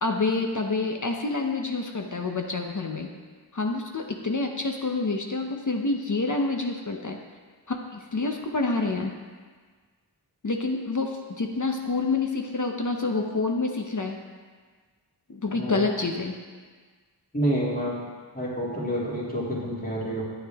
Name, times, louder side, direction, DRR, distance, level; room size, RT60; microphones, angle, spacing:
voice 1, 0.0-3.1 3.5-7.2 7.7-9.2 10.4-14.2 15.3-16.4, left 3 dB, 45° left, 3 dB, 0.8 m, -27 dB
voice 2, 15.5-15.9 17.3-18.0 18.3-20.2, equal, 20° left, -6 dB, 2.5 m, -28 dB
9.6 x 8.8 x 3.5 m, 1.5 s
wide cardioid pair, 75°, 44 cm